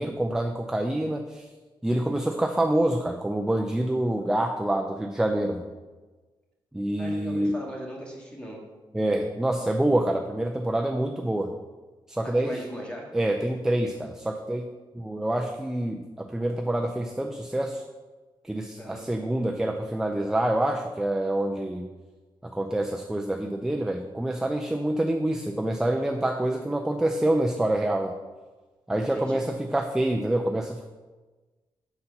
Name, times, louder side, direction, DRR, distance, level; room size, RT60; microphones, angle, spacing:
voice 1, 0.0-1.5 1.8-5.7 6.7-7.6 8.9-11.5 12.1-12.6 13.1-14.7 14.9-17.8 18.4-21.9 22.4-28.2 28.9-30.9, right 1 dB, 5° right, 3 dB, 0.4 m, -26 dB
voice 2, 7.0-8.6 12.4-13.1 18.8-19.0 29.1-29.4, equal, 10° left, -2 dB, 1.8 m, -38 dB
6.9 x 4.3 x 5.3 m, 1.3 s
wide cardioid pair, 125°, 9 cm